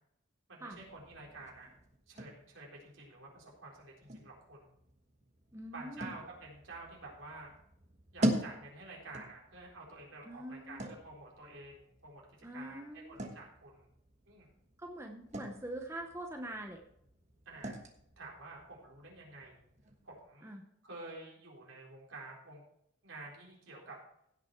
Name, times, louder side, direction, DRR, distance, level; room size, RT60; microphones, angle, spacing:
voice 1, 0.5-1.7 2.1-4.8 5.7-7.5 8.1-12.2 12.5-13.9 14.3-14.5 17.5-17.8 18.2-19.6 20.0-20.5 20.8-22.6 23.0-24.0, right 2 dB, 75° right, -2 dB, 4.1 m, -50 dB
sound 1, 0.7-20.3, right 1 dB, 35° right, 1.3 m, -43 dB
voice 2, 5.5-6.1 10.2-10.9 12.4-13.2 14.8-16.8 20.4-20.6, right 1 dB, 15° right, 3 dB, 0.8 m, -44 dB
16.5 x 6.2 x 4.5 m, 0.72 s
head